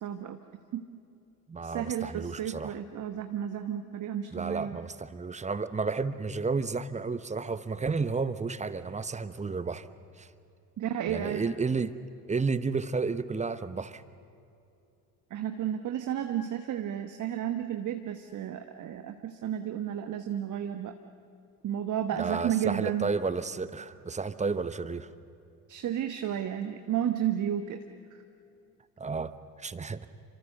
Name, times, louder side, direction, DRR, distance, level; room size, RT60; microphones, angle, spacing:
voice 1, 0.0-0.4 0.7-0.8 1.6-4.8 10.8-11.4 15.3-20.9 21.6-23.1 25.7-27.8, right 10 dB, 40° right, 7 dB, 1.3 m, -32 dB
voice 2, 1.5-2.7 4.3-9.9 10.2-10.3 11.1-11.9 12.3-14.0 22.1-25.1 29.0-29.3 29.6-30.1, right 4 dB, 15° right, 14 dB, 0.9 m, -32 dB
29.0 x 25.5 x 6.9 m, 2.6 s
figure-of-eight pair, 55°, 49 cm